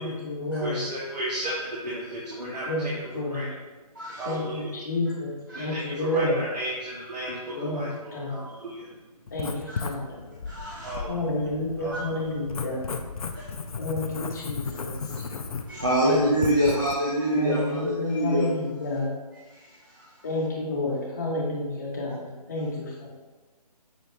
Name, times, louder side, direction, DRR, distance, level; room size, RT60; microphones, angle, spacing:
voice 1, 0.0-0.8 2.7-3.5 4.2-6.4 7.5-8.4 9.3-10.2 11.1-12.8 13.8-14.9 16.0-16.7 17.3-19.1 20.2-23.1, left 1 dB, 25° left, -4 dB, 0.9 m, -30 dB
voice 2, 0.6-2.9 3.3-3.5 4.1-4.7 5.5-8.9 10.7-11.1 11.8-12.3 15.1-15.3, equal, 85° right, -7 dB, 1.2 m, -34 dB
voice 3, 3.9-4.3 5.5-5.7 9.7-9.8 10.5-10.9 11.9-12.0 13.3-13.4 15.7-18.5 19.5-20.2, equal, 30° right, -5 dB, 0.4 m, -26 dB
Writing, 9.3-16.9, left 4 dB, 60° left, 0.4 m, -35 dB
5.6 x 2.6 x 3.2 m, 1.2 s
hypercardioid pair, 170°, 21 cm